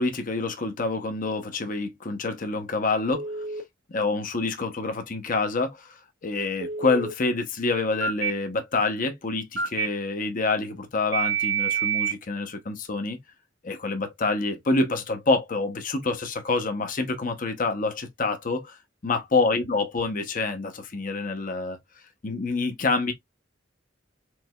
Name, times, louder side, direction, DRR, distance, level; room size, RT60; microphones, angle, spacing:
voice 1, 0.0-3.3 3.9-13.2 13.6-18.8 19.0-21.8 22.2-23.1, left 3 dB, 45° left, 0.9 m, -27 dB
Telephone, 3.1-3.6 6.6-7.1 8.0-8.3 9.6-9.9 11.1-12.1, right 7 dB, 70° right, 0.9 m, -27 dB
4.6 x 3.3 x 2.3 m
head